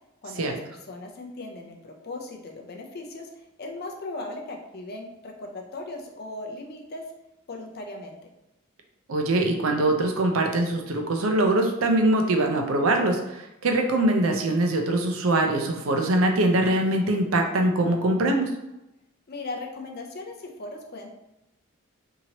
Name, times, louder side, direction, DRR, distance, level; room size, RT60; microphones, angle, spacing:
voice 1, 0.2-7.1 7.5-8.2 19.3-21.1, left 2 dB, 50° left, 1 dB, 0.5 m, -38 dB
voice 2, 9.1-18.5, right 1 dB, 80° right, 3 dB, 0.5 m, -23 dB
2.9 x 2.7 x 2.8 m, 0.93 s
head